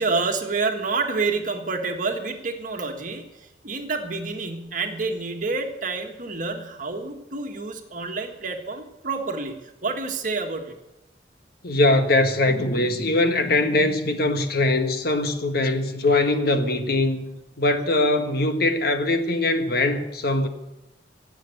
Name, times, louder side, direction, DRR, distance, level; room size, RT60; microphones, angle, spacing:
voice 1, 0.0-10.7, right 4 dB, 50° right, 1.6 m, -28 dB
voice 2, 11.6-17.3 17.6-20.5, left 2 dB, 60° left, 1.5 m, -22 dB
16.5 x 7.7 x 9.2 m
head